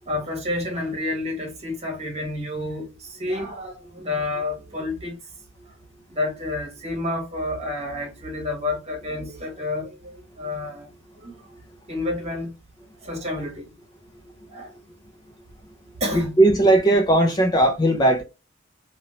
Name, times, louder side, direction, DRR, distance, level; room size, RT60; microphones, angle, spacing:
voice 1, 0.1-5.2 6.1-10.9 11.2-11.5 11.9-12.5 13.0-13.7 14.5-14.8 16.0-16.3, left 2 dB, 35° right, 1.4 m, -29 dB
voice 2, 16.1-18.2, right 1 dB, 20° left, 0.4 m, -18 dB
2.9 x 2.8 x 2.8 m
head